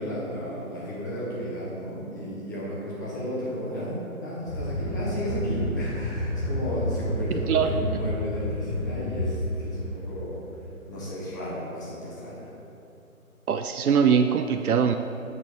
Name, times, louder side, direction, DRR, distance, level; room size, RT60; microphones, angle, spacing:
voice 1, 0.0-10.4 10.9-12.5, equal, 15° left, -7 dB, 0.9 m, -33 dB
sound 1, 4.5-9.8, left 1 dB, 55° left, 1.9 m, -30 dB
voice 2, 13.5-15.0, right 7 dB, 85° right, 7 dB, 0.5 m, -22 dB
9.4 x 6.1 x 3.6 m, 2.8 s
figure-of-eight pair, 155°, 43 cm